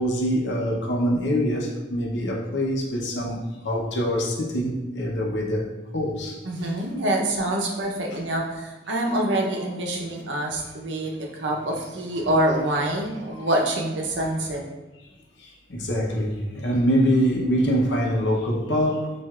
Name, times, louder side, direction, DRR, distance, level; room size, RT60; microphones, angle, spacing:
voice 1, 0.0-3.4 3.6-5.7 5.9-6.4 8.1-8.2 15.4-19.1, equal, 75° left, -1 dB, 0.8 m, -24 dB
voice 2, 6.4-14.6, right 1 dB, 80° right, 0 dB, 0.8 m, -26 dB
7.3 x 2.5 x 2.4 m, 1.1 s
head